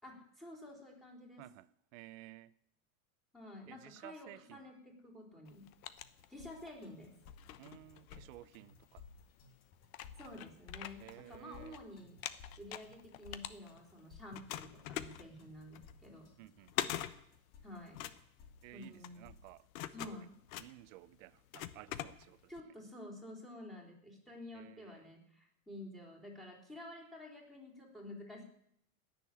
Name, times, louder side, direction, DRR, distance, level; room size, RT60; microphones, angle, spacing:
voice 1, 0.0-1.4 3.3-5.7 6.3-7.1 10.2-12.2 12.6-16.3 17.6-18.0 18.7-19.3 19.9-20.3 22.5-28.4, left 1 dB, ahead, 3.9 m, -50 dB
voice 2, 1.4-2.5 3.7-4.7 7.6-9.1 11.0-11.8 16.4-16.9 18.6-19.7 20.0-20.3 20.6-22.5 24.5-25.1, right 18 dB, 65° right, 0.8 m, -55 dB
sound 1, 5.5-6.8 7.2-8.9 9.5-9.6 9.9-11.8 12.1-14.0 14.3-22.6, left 13 dB, 75° left, 1.1 m, -44 dB
sound 2, 6.0-19.6, left 5 dB, 35° left, 2.3 m, -58 dB
18.0 x 7.0 x 10.0 m
supercardioid pair, 145°, 42 cm